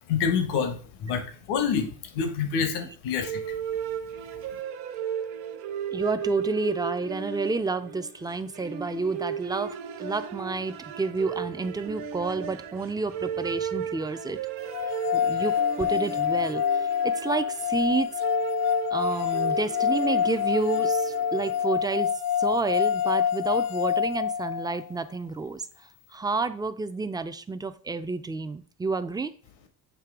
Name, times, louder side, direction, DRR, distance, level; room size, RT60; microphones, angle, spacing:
voice 1, 0.1-3.4, left 6 dB, 80° left, 7 dB, 1.2 m, -27 dB
sound 1, 3.2-21.7, right 8 dB, 75° right, 0.8 m, -35 dB
voice 2, 5.9-14.4 14.8-18.1 18.9-22.1 22.4-25.7 26.1-29.3, right 3 dB, 10° right, 10 dB, 0.5 m, -30 dB
sound 2, 14.7-24.9, left 8 dB, 55° left, 0.5 m, -26 dB
7.6 x 2.8 x 4.8 m, 0.42 s
supercardioid pair, 85°, 40 cm